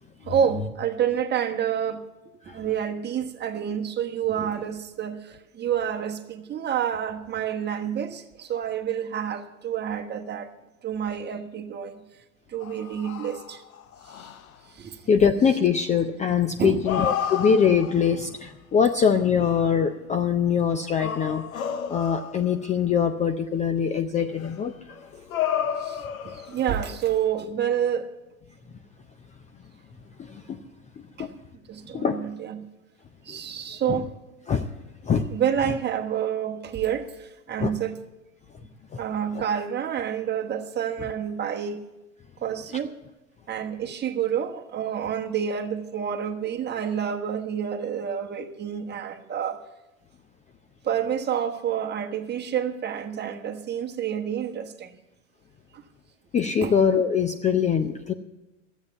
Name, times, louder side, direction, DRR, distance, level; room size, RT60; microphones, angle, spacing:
voice 1, 0.2-2.1 2.5-10.5 10.8-12.0 12.5-13.6 14.2-14.3 14.7-15.0 16.6-16.8 25.8-28.1 31.2-31.3 31.7-32.7 33.2-34.1 35.3-38.0 39.0-41.8 42.4-43.0 43.5-49.6 50.8-55.0 55.7-55.8 56.6-56.7, right 8 dB, 25° right, 1.3 m, -28 dB
sound 1, 12.6-14.6 16.6-18.3 19.2-19.8 20.7-22.7 24.4-26.9, left 9 dB, 75° left, 0.9 m, -32 dB
voice 2, 15.1-25.0 30.2-30.6 31.2-31.3 31.9-32.2 33.3-33.4 33.9-34.0 34.5-34.7 35.0-35.3 37.6-37.7 38.9-39.0 56.3-58.1, left 7 dB, 15° left, 0.5 m, -23 dB
13.0 x 8.2 x 8.4 m
hypercardioid pair, 95°, 42 cm